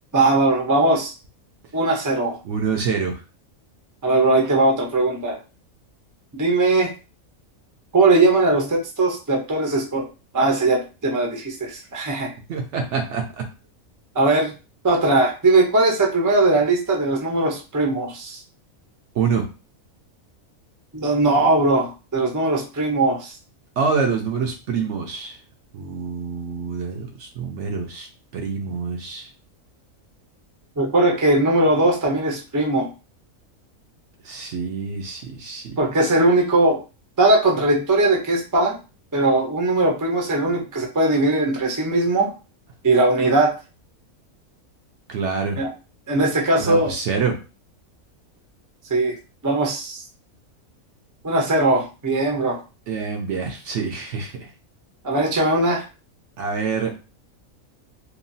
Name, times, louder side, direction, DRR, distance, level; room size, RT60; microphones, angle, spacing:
voice 1, 0.1-1.1 1.7-2.4 4.0-5.4 6.4-6.9 7.9-10.1 10.3-12.3 14.1-14.5 14.8-18.4 20.9-23.4 30.8-32.9 35.8-36.8 37.2-38.8 39.1-42.3 42.8-43.5 45.6-45.7 46.1-46.9 48.9-49.1 49.4-50.0 51.2-52.6 55.0-55.8, right 2 dB, 25° right, 0 dB, 0.4 m, -19 dB
voice 2, 2.4-3.2 12.5-13.4 19.2-19.4 23.8-25.4 25.7-28.1 28.3-29.3 34.2-35.8 45.1-45.6 46.6-47.4 52.9-54.4 56.4-56.9, right 5 dB, 65° right, 3 dB, 0.8 m, -26 dB
2.9 x 2.3 x 2.6 m, 0.31 s
omnidirectional pair, 1.5 m